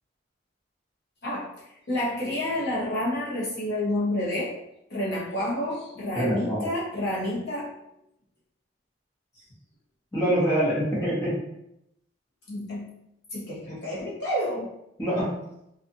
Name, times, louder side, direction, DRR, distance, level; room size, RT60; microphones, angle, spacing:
voice 1, 1.9-4.5 4.9-7.7 12.5-12.9 13.3-14.7, left 1 dB, 55° left, -7 dB, 0.9 m, -29 dB
voice 2, 6.1-6.7 10.1-11.3 15.0-15.3, equal, 15° left, -9 dB, 0.8 m, -25 dB
2.6 x 2.4 x 2.6 m, 0.80 s
head